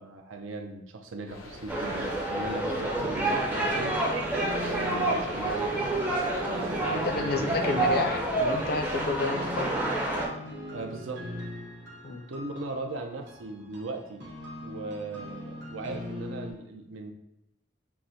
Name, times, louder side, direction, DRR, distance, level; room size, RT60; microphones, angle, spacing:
voice 1, 0.0-4.0 4.6-6.0 6.4-7.7 10.7-11.2 12.3-14.2 14.6-17.1, right 3 dB, 75° right, 4 dB, 0.5 m, -38 dB
sound 1, 1.2-9.1, left 1 dB, 85° left, 0.7 m, -45 dB
sound 2, 1.7-10.3, right 2 dB, 10° right, 0.5 m, -29 dB
Back to the journey, 1.8-16.5, left 2 dB, 60° right, 0.9 m, -41 dB
voice 2, 7.0-9.7 12.0-12.3, left 3 dB, 50° left, 5 dB, 0.4 m, -30 dB
5.9 x 2.1 x 2.6 m, 0.93 s
head